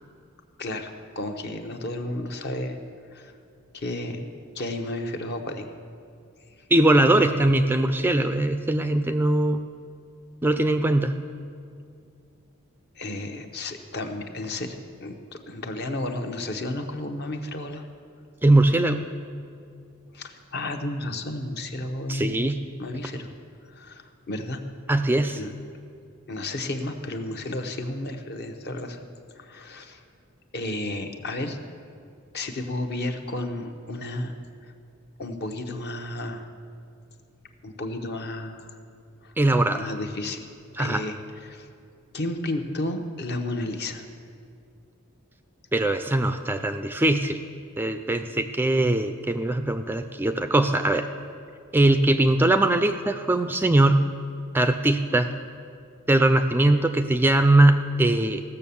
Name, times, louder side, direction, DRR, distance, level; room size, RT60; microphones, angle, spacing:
voice 1, 0.6-2.8 3.1-3.3 3.7-5.7 13.0-17.9 20.1-23.3 23.7-24.6 25.4-25.5 26.3-29.1 29.4-30.0 30.5-31.6 32.3-34.3 34.6-34.7 35.2-36.5 37.6-38.8 39.2-39.3 39.7-40.5 40.8-41.2 41.4-41.7 42.1-44.0, left 1 dB, 50° left, 5 dB, 0.9 m, -32 dB
voice 2, 6.7-9.6 10.4-11.1 18.4-19.1 22.1-22.6 24.9-25.4 39.4-39.9 40.8-41.0 45.7-47.4 47.8-51.1 51.7-54.1 54.5-55.3 56.1-58.4, right 1 dB, 10° right, 8 dB, 0.3 m, -21 dB
15.5 x 6.8 x 7.0 m, 2.4 s
head